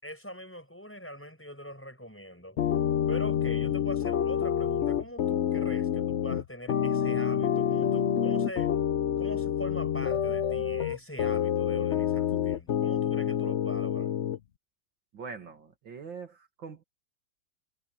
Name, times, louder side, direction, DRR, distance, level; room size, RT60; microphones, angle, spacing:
voice 1, 0.0-2.6 3.1-8.7 9.2-14.1, equal, 5° left, 6.0 m, -42 dB
sound 1, 2.6-14.4, left 9 dB, 90° left, 0.6 m, -27 dB
voice 2, 15.1-16.8, right 5 dB, 65° right, 2.8 m, -43 dB
omnidirectional pair, 2.2 m